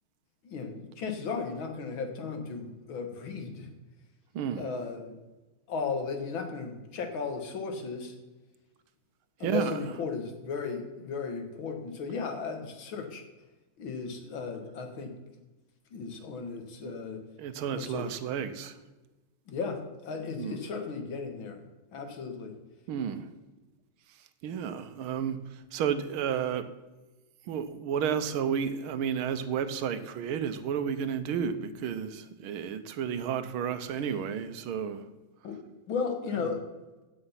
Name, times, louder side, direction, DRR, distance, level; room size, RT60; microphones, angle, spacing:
voice 1, 0.4-3.7 4.5-5.1 5.7-8.1 9.4-13.2 13.8-15.1 15.9-17.2 17.7-18.1 19.5-21.6 21.9-22.6 33.9-34.2 35.4-35.6 35.9-36.6, left 5 dB, 70° left, 6 dB, 2.4 m, -35 dB
voice 2, 4.3-4.7 9.4-9.8 16.8-16.9 17.4-18.8 20.4-20.6 22.9-23.3 24.4-26.7 27.5-35.1 36.4-36.5, right 8 dB, 90° right, 11 dB, 1.7 m, -32 dB
16.0 x 6.4 x 5.7 m, 1.1 s
omnidirectional pair, 2.2 m